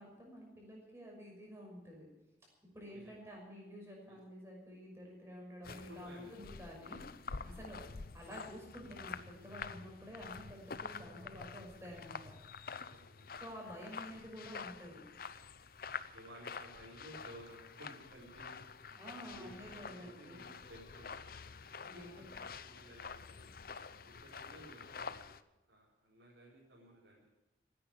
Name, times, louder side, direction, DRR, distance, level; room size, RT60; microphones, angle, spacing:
voice 1, 0.0-2.1 2.7-7.8 8.1-12.3 13.4-15.1 18.9-20.4 21.9-22.3, equal, 15° right, -1 dB, 5.8 m, -50 dB
voice 2, 2.9-3.4 4.1-4.2 5.6-6.3 7.6-7.8 12.7-13.6 15.9-18.6 19.1-21.3 21.9-23.5 24.0-27.3, right 1 dB, 75° right, -6 dB, 4.4 m, -56 dB
sound 1, 5.6-25.4, left 5 dB, 50° left, 0.6 m, -48 dB
16.5 x 9.9 x 8.8 m, 0.99 s
head